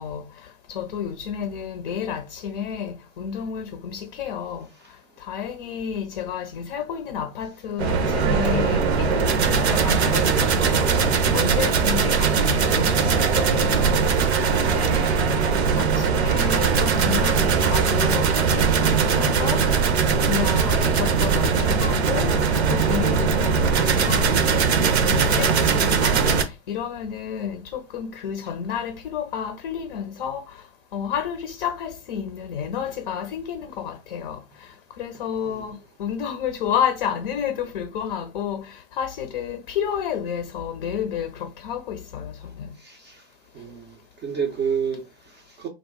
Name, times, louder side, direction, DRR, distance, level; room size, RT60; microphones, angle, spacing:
voice 1, 0.0-4.7 5.2-14.0 14.5-19.7 20.3-22.4 22.7-30.7 30.9-42.7, left 8 dB, 50° left, 0.5 m, -31 dB
sound 1, 7.8-26.4, right 5 dB, 70° right, 0.7 m, -20 dB
voice 2, 42.8-43.3 43.5-45.7, right 7 dB, 20° right, 0.4 m, -30 dB
2.3 x 2.0 x 3.6 m
hypercardioid pair, 110°, 33 cm